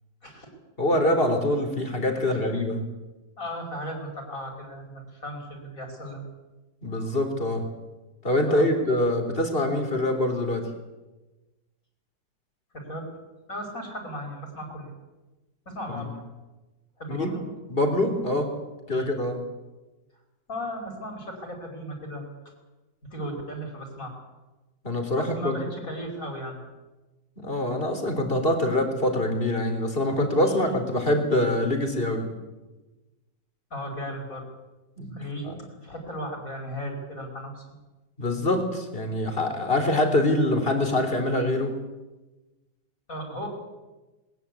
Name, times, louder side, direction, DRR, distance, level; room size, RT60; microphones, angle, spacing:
voice 1, 0.8-2.8 6.8-7.7 8.2-10.7 15.9-16.1 17.1-17.3 17.7-18.5 18.9-19.4 24.8-25.6 27.4-32.3 35.0-35.2 35.4-35.5 38.2-41.8, left 1 dB, 30° left, 5 dB, 3.7 m, -24 dB
voice 2, 2.1-2.6 3.4-6.2 8.5-8.7 12.7-13.1 13.5-14.9 15.7-16.2 17.0-17.4 18.9-19.1 20.5-22.3 23.1-24.1 25.1-26.6 30.5-30.7 33.7-34.5 35.1-35.5 35.8-37.6 43.1-43.5, equal, 50° left, 2 dB, 5.9 m, -36 dB
20.5 x 20.5 x 8.4 m, 1.1 s
omnidirectional pair, 1.9 m